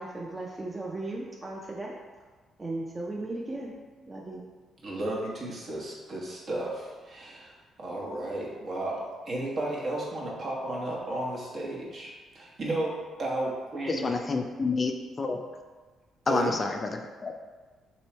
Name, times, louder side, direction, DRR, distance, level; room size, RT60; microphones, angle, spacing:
voice 1, 0.0-1.9 2.6-3.7 4.0-4.4, right 2 dB, 25° right, -2 dB, 0.5 m, -36 dB
voice 2, 4.8-14.1 16.2-16.6, right 1 dB, 55° right, -3 dB, 1.0 m, -33 dB
voice 3, 13.9-14.9 15.2-15.4 16.3-16.9 17.2-17.3, left 3 dB, 35° left, 4 dB, 0.4 m, -28 dB
3.1 x 3.0 x 4.3 m, 1.4 s
cardioid pair, 90°, 0 cm